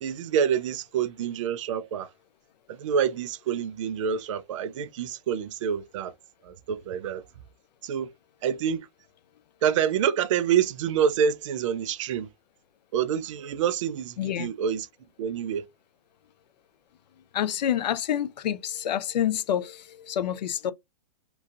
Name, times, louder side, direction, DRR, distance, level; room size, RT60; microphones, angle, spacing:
voice 1, 0.0-2.1 2.7-6.1 6.4-7.2 7.8-8.1 8.4-8.9 9.6-12.3 12.9-14.9 15.2-15.6, right 8 dB, 50° right, 0.4 m, -27 dB
voice 2, 14.2-14.5 17.3-20.7, left 10 dB, 85° left, 0.5 m, -28 dB
2.9 x 2.6 x 2.4 m
hypercardioid pair, 160°, 21 cm